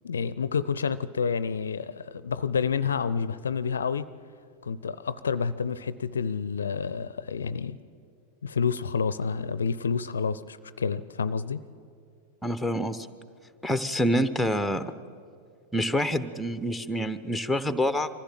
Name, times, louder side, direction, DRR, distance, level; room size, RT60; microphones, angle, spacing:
voice 1, 0.0-4.0 4.7-7.8 8.4-11.6, left 6 dB, 70° left, 17 dB, 0.5 m, -29 dB
voice 2, 12.4-13.1 13.6-14.8 15.7-18.1, equal, ahead, 11 dB, 0.9 m, -27 dB
24.0 x 15.0 x 7.6 m, 2.3 s
figure-of-eight pair, 90°, 0 cm